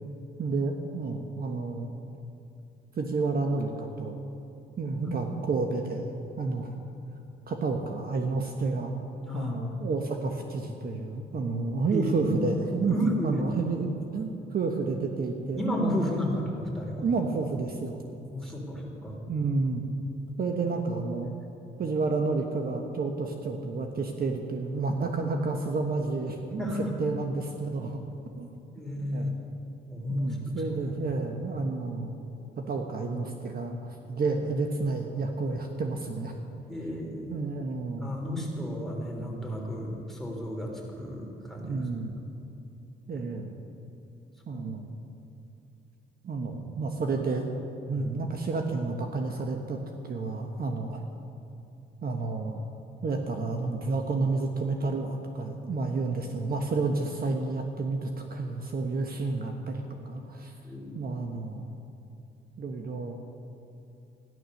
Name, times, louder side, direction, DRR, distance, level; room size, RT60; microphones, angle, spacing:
voice 1, 0.4-1.9 3.0-4.2 4.8-6.0 6.4-6.7 7.5-8.9 9.3-13.0 13.2-15.6 17.0-18.0 18.4-18.5 19.3-19.8 20.4-21.3 21.8-26.7 27.0-28.0 28.4-28.5 29.1-29.3 30.1-32.1 32.6-36.3 37.3-38.1 41.6-42.1 43.1-43.5 44.5-44.9 46.2-47.5 47.9-49.8 50.0-51.0 52.0-52.6 53.0-60.5 60.9-61.7 62.6-63.2, right 3 dB, 50° right, 3 dB, 1.2 m, -30 dB
voice 2, 9.3-9.6 11.9-12.3 12.9-13.3 15.6-17.1 18.3-19.2 26.6-27.0 28.7-29.3 29.6-30.4 36.7-37.4 38.0-41.8 42.5-42.6 43.1-43.3 44.5-44.6 47.9-48.1 51.2-51.3 60.6-61.0, equal, ahead, -2 dB, 3.5 m, -32 dB
14.0 x 11.0 x 6.5 m, 2.8 s
cardioid pair, 90°, 20 cm